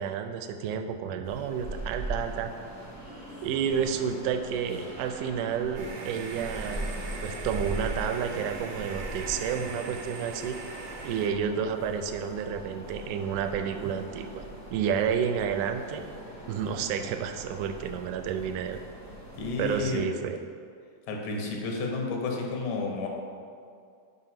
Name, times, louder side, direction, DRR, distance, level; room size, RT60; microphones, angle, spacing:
voice 1, 0.0-2.5 3.4-6.9 7.2-10.6 11.0-14.4 14.7-16.0 16.5-18.8 19.6-20.4, right 7 dB, 85° right, 7 dB, 2.0 m, -30 dB
sound 1, 1.2-20.0, right 1 dB, 5° left, 0.5 m, -41 dB
sound 2, 5.8-11.3, right 4 dB, 65° right, 1.7 m, -40 dB
voice 2, 19.4-20.0 21.1-23.1, left 3 dB, 90° left, 0 dB, 2.5 m, -31 dB
5.6 x 5.0 x 5.7 m, 2.3 s
omnidirectional pair, 3.5 m